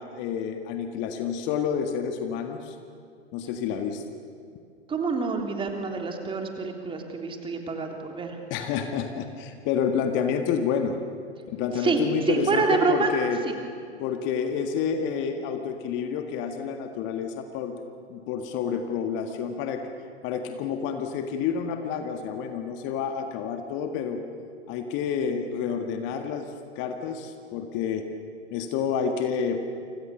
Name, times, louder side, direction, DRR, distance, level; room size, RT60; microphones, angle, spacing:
voice 1, 0.0-2.8 3.3-4.0 8.5-11.0 11.5-13.4 14.0-17.8 18.1-19.9 20.2-24.2 24.7-28.1 28.5-29.6, left 7 dB, 35° left, 6 dB, 1.8 m, -29 dB
voice 2, 4.9-8.4 11.8-13.1 13.4-13.5, right 4 dB, 15° right, 3 dB, 3.2 m, -27 dB
29.5 x 25.5 x 6.9 m, 2.4 s
figure-of-eight pair, 100°, 34 cm